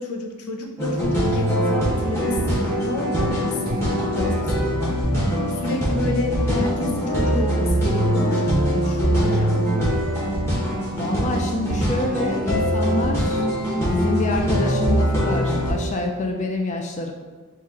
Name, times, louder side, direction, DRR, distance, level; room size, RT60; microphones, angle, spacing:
voice 1, 0.0-3.6 3.8-5.0 5.6-9.6, left 1 dB, 85° left, 2 dB, 0.6 m, -30 dB
sound 1, 0.8-15.7, equal, 10° left, 1.2 m, -22 dB
voice 2, 10.9-17.1, left 2 dB, 35° left, 2 dB, 0.3 m, -27 dB
4.3 x 2.4 x 3.7 m, 1.4 s
head